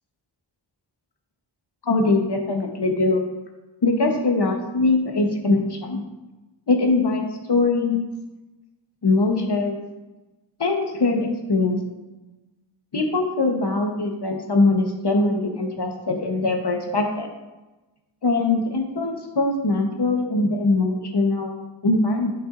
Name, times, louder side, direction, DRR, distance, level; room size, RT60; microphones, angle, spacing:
voice 1, 1.9-3.2 3.8-6.0 6.7-7.2 7.5-8.0 9.0-9.8 10.6-11.8 12.9-17.3 18.2-22.3, left 3 dB, 55° left, 3 dB, 1.1 m, -22 dB
8.2 x 6.0 x 2.6 m, 1.1 s
wide cardioid pair, 55°, 48 cm